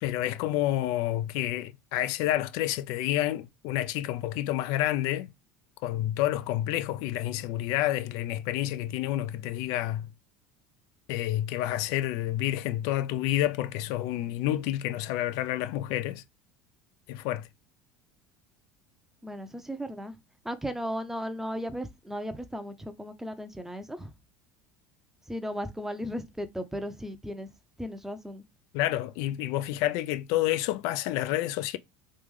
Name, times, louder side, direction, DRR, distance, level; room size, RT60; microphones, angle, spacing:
voice 1, 0.0-5.3 5.8-10.1 11.1-16.2 17.1-17.5 28.7-31.8, left 14 dB, 70° left, 0.4 m, -29 dB
voice 2, 19.2-20.1 20.4-24.1 25.3-27.5 27.8-28.4, equal, 5° right, 0.6 m, -36 dB
3.2 x 2.4 x 3.6 m
supercardioid pair, 95°, 7 cm